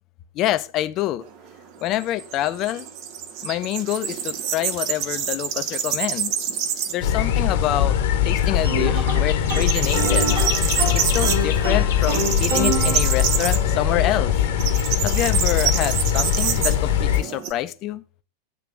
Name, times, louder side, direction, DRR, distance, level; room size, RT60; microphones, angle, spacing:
voice 1, 0.4-1.2 1.8-2.9 3.4-6.3 6.9-7.9 8.2-10.4 10.9-14.3 15.0-18.0, left 13 dB, 35° left, 0.6 m, -26 dB
sound 1, 1.2-7.1 7.5-7.6 8.0-8.8 9.0-17.5, right 8 dB, 40° right, 0.7 m, -27 dB
sound 2, 7.0-17.2, left 9 dB, 55° left, 1.0 m, -21 dB
sound 3, 8.6-13.7, right 1 dB, 60° right, 2.1 m, -28 dB
8.5 x 3.4 x 6.0 m
figure-of-eight pair, 90°, 0 cm